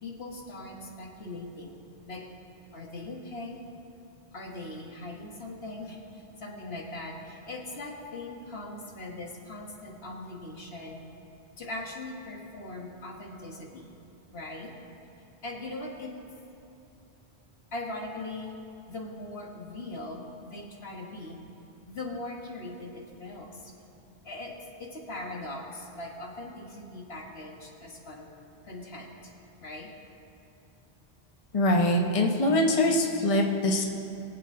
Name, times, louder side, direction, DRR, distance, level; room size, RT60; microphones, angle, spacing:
voice 1, 0.0-1.8 2.1-2.3 2.7-3.6 4.3-11.0 11.6-13.9 14.3-14.7 15.4-16.1 17.7-18.5 18.9-21.4 21.9-23.7 24.2-24.5 24.8-28.3 28.6-29.3 29.6-29.9, left 2 dB, 80° left, 0 dB, 1.7 m, -40 dB
voice 2, 31.5-33.8, left 1 dB, 35° left, 2 dB, 1.0 m, -23 dB
22.0 x 8.0 x 3.7 m, 2.8 s
omnidirectional pair, 1.0 m